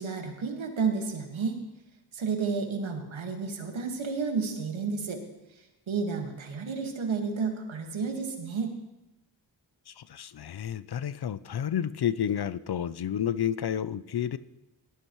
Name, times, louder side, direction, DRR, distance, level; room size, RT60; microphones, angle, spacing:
voice 1, 0.0-1.6 2.1-5.2 5.9-8.7, right 5 dB, 80° right, 4 dB, 1.8 m, -31 dB
voice 2, 9.9-14.4, left 9 dB, 55° left, 16 dB, 0.6 m, -30 dB
18.0 x 13.0 x 3.1 m, 0.95 s
cardioid pair, 40°, 47 cm